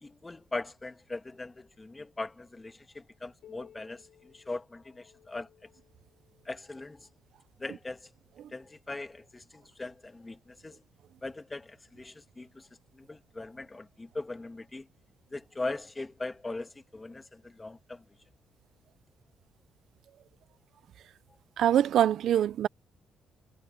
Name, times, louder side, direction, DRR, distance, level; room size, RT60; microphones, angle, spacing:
voice 1, 0.0-5.5 6.4-7.0 7.6-8.1 8.5-10.8 11.2-12.7 12.9-14.9 15.3-18.0, left 2 dB, 20° left, 1.5 m, -40 dB
Piano, 3.4-8.7 9.6-9.7 10.2-10.3 11.1-11.2 12.2-12.3, left 10 dB, 70° left, 7.0 m, -60 dB
voice 2, 21.6-22.7, right 10 dB, 70° right, 0.5 m, -24 dB
cardioid pair, 90°, 0 cm